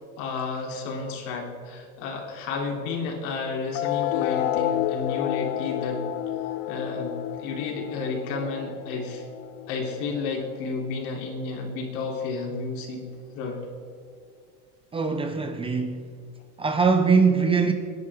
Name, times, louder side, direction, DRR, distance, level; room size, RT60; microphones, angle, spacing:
voice 1, 0.2-6.1 6.7-9.2 9.7-13.0 13.4-13.7, left 4 dB, 75° left, 3.5 m, -31 dB
sound 1, 3.7-10.7, left 13 dB, 45° left, 0.6 m, -30 dB
voice 2, 14.9-16.1 16.6-17.7, right 5 dB, 15° right, 0.6 m, -22 dB
28.5 x 10.5 x 3.7 m
cardioid pair, 165°, 38 cm